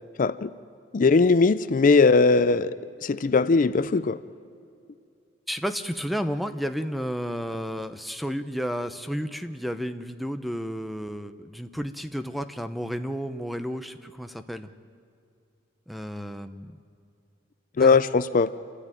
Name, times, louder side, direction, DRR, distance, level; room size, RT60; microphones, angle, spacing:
voice 1, 0.2-0.5 0.9-2.7 3.0-4.2 17.8-18.5, left 4 dB, 45° left, 13 dB, 0.4 m, -19 dB
voice 2, 5.5-14.7 15.9-16.7 17.8-18.0, equal, ahead, 9 dB, 0.7 m, -32 dB
29.0 x 13.5 x 9.1 m, 2.5 s
head